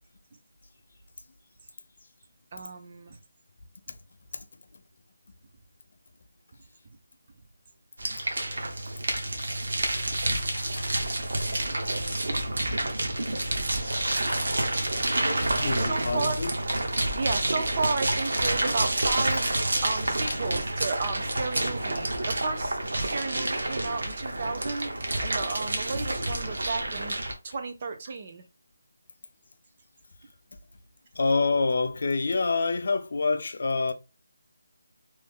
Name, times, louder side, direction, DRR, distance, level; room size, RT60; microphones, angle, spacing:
voice 1, 2.5-3.2 8.1-8.2 13.5-13.6 15.5-16.4 17.2-19.5 19.8-28.4, right 4 dB, 25° right, 0.4 m, -33 dB
sound 1, 8.0-27.3, right 1 dB, 75° right, 0.9 m, -28 dB
voice 2, 10.5-10.9 15.5-16.5 20.3-20.4 31.1-33.9, left 4 dB, 45° left, 0.4 m, -27 dB
3.1 x 2.0 x 3.6 m
figure-of-eight pair, 175°, 0 cm